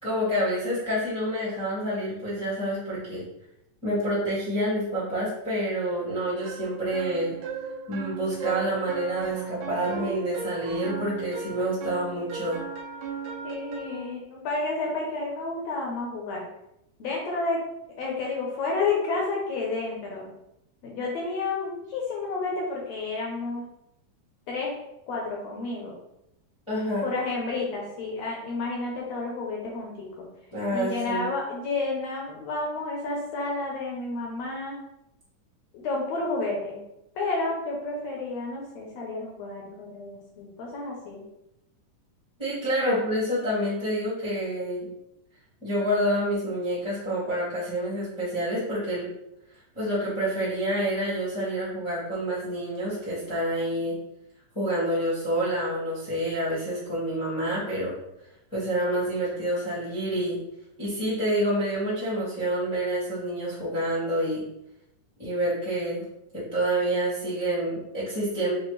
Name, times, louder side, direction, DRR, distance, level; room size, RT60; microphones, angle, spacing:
voice 1, 0.0-3.2 3.8-7.3 7.9-12.6 26.7-27.1 30.5-31.2 42.4-44.9 45.6-49.1 49.7-54.0 54.5-57.9 58.5-60.4 60.8-64.4 65.2-66.0 66.3-68.5, right 1 dB, 40° left, -9 dB, 0.4 m, -28 dB
sound 1, 6.4-14.1, right 6 dB, 80° right, 1.7 m, -36 dB
voice 2, 13.4-16.5 17.0-17.6 18.0-20.3 20.8-23.7 24.5-24.7 25.1-26.0 27.0-30.1 30.7-34.8 35.7-36.8 37.1-41.2 42.8-43.0, left 3 dB, 75° left, -2 dB, 1.6 m, -30 dB
6.7 x 2.5 x 3.1 m, 0.84 s
omnidirectional pair, 3.8 m